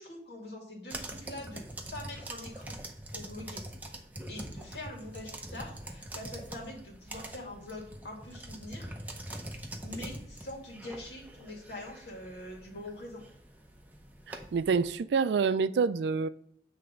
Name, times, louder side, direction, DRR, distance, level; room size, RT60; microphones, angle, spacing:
voice 1, 0.0-1.6 1.9-2.8 3.1-3.6 4.3-8.9 9.8-13.2, left 1 dB, 75° left, 2.2 m, -44 dB
sound 1, 0.9-14.9, right 1 dB, 10° right, 0.6 m, -44 dB
voice 2, 14.3-16.3, right 5 dB, 80° right, 0.3 m, -27 dB
7.8 x 3.4 x 5.1 m
head